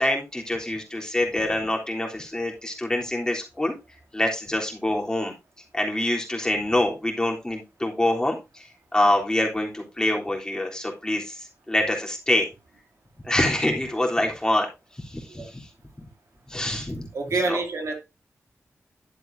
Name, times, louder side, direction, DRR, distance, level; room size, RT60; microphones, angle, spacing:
voice 1, 0.0-3.7 4.1-5.3 5.7-12.5 13.2-14.7 15.0-15.7 16.5-17.1 17.5-17.6, left 1 dB, 15° left, 0 dB, 3.5 m, -25 dB
voice 2, 17.1-17.9, right 3 dB, 75° right, 3 dB, 2.8 m, -27 dB
11.5 x 8.0 x 2.7 m, 0.24 s
wide cardioid pair, 75°, 5 cm